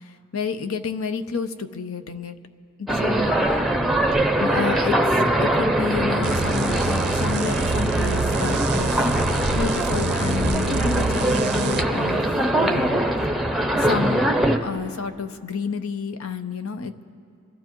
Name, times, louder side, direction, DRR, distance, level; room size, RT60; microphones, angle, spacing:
voice 1, 0.3-2.4 2.8-3.3 4.4-5.0 5.2-8.9 9.5-12.2 12.6-13.0 13.8-14.2 14.6-16.9, left 5 dB, 85° left, 10 dB, 0.7 m, -30 dB
sound 1, 2.9-14.6, right 1 dB, ahead, 0.6 m, -22 dB
sound 2, 6.2-11.9, right 5 dB, 55° right, 0.4 m, -28 dB
27.0 x 14.0 x 3.0 m, 2.4 s
head